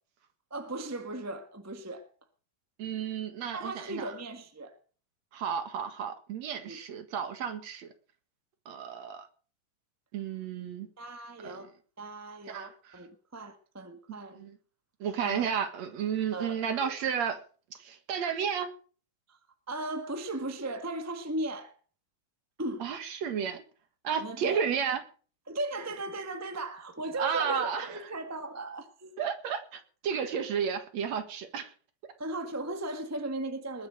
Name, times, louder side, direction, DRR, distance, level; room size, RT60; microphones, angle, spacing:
voice 1, 0.5-2.1 3.5-4.8 6.7-6.8 11.0-11.7 12.0-14.4 15.2-15.6 16.3-16.9 19.3-19.4 19.7-21.8 22.6-22.9 24.2-24.7 25.5-29.2 32.2-33.9, right 2 dB, 20° right, 0.3 m, -37 dB
voice 2, 2.8-4.2 5.3-7.9 8.7-9.3 10.1-10.9 11.4-11.6 12.5-13.0 14.1-14.6 15.0-17.4 17.8-18.7 22.8-23.6 24.0-25.0 27.2-28.1 29.2-31.7, right 7 dB, 60° right, 2.6 m, -32 dB
20.5 x 7.4 x 6.6 m
omnidirectional pair, 3.9 m